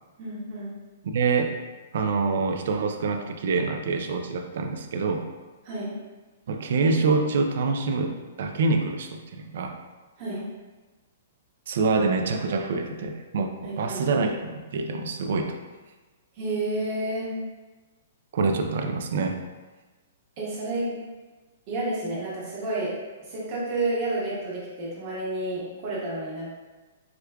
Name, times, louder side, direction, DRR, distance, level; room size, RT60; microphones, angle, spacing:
voice 1, 0.2-0.7 5.6-5.9 10.2-10.4 13.6-14.0 16.3-17.3 20.4-20.9 21.7-22.9 23.2-26.5, right 2 dB, 35° right, -7 dB, 1.2 m, -30 dB
voice 2, 1.1-1.6 1.9-5.3 6.5-9.8 11.7-15.6 18.3-19.4, right 4 dB, 65° right, 5 dB, 0.4 m, -26 dB
4.8 x 2.2 x 2.2 m, 1.3 s
hypercardioid pair, 160°, 0 cm